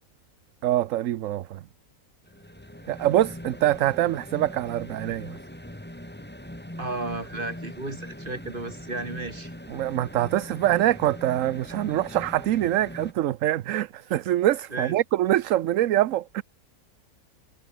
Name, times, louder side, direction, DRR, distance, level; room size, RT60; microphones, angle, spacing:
voice 1, 0.6-1.6 2.9-5.3 9.7-16.4, right 13 dB, 65° right, 1.0 m, -24 dB
sound 1, 2.2-13.1, equal, 5° left, 3.5 m, -41 dB
voice 2, 6.8-9.5 14.7-15.0, right 2 dB, 35° right, 3.7 m, -33 dB
omnidirectional pair, 1.6 m